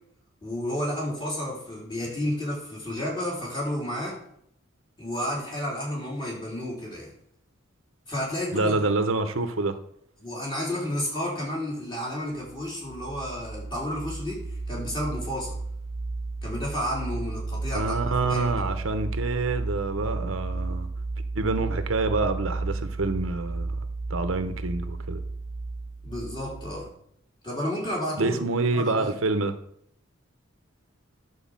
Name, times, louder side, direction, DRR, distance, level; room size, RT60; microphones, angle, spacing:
voice 1, 0.4-4.2 5.0-7.1 8.1-8.8 10.2-15.6 16.4-18.0 18.3-18.5 26.0-26.9 27.4-28.4 28.7-29.1, left 1 dB, 20° left, 3.6 m, -31 dB
voice 2, 8.5-9.8 17.7-20.9 21.3-23.8 24.1-25.2 28.2-29.5, right 3 dB, 80° right, 0.9 m, -27 dB
sound 1, 12.4-26.9, right 3 dB, 30° right, 0.6 m, -33 dB
10.5 x 4.8 x 7.3 m
head